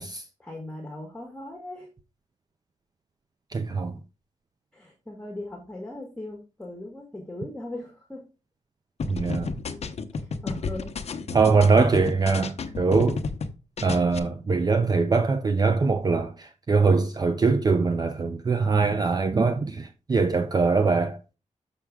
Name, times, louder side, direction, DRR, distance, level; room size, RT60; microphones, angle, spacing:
voice 1, 0.4-1.9 4.7-8.2 10.1-10.9, left 1 dB, 5° left, 1.7 m, -39 dB
voice 2, 3.5-3.9 9.1-9.5 11.3-13.2 13.8-21.2, right 4 dB, 30° right, 0.6 m, -22 dB
sound 1, 9.0-13.5 13.8-14.2, left 4 dB, 60° left, 0.9 m, -31 dB
6.8 x 6.1 x 3.6 m
wide cardioid pair, 155°, 13 cm